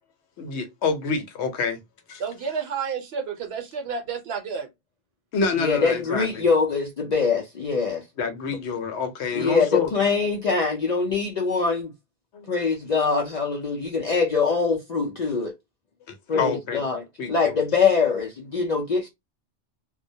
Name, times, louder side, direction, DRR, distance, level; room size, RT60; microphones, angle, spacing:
voice 1, 0.4-1.8 2.1-2.2 5.3-6.4 8.2-9.9 12.3-12.6 16.1-16.8 17.2-17.6, left 5 dB, 75° left, 0.9 m, -27 dB
voice 2, 2.2-4.7, right 6 dB, 65° right, 0.8 m, -30 dB
voice 3, 5.6-8.0 9.3-11.9 12.5-15.5 16.3-19.1, left 5 dB, 60° left, 0.4 m, -23 dB
2.2 x 2.1 x 2.6 m
omnidirectional pair, 1.2 m